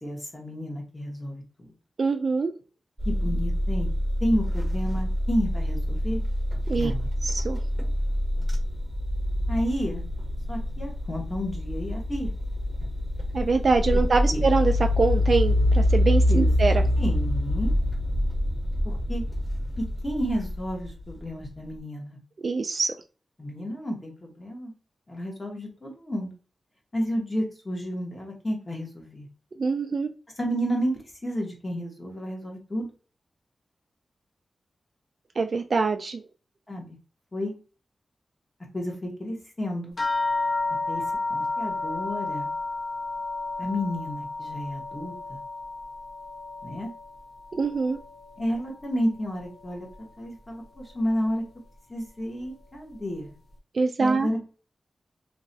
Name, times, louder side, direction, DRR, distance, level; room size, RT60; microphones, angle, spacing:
voice 1, 0.0-1.7 3.0-3.9 4.2-6.2 6.7-7.1 9.5-10.0 10.5-12.3 13.9-14.0 14.3-14.4 16.3-16.5 17.0-17.7 18.8-19.2 20.0-22.2 23.4-24.7 25.1-26.3 26.9-29.3 30.4-30.9 31.2-32.9 36.7-37.0 37.3-37.6 38.7-40.0 40.9-41.0 41.3-42.5 43.6-45.4 46.6-46.9 48.4-49.9 50.2-51.4 51.9-53.3 54.0-54.4, equal, 25° left, 0 dB, 1.3 m, -31 dB
voice 2, 2.0-2.5 6.7-6.9 7.2-7.6 13.3-16.8 22.4-22.9 29.6-30.1 35.4-36.2 47.5-48.0 53.7-54.3, right 4 dB, 55° right, 5 dB, 0.3 m, -24 dB
sound 1, 3.0-21.5, left 1 dB, ahead, 1.1 m, -26 dB
sound 2, 40.0-48.8 49.1-50.0 50.7-50.8 51.3-51.4, left 3 dB, 60° left, 1.1 m, -32 dB
3.0 x 2.9 x 2.7 m, 0.35 s
wide cardioid pair, 115°, 0 cm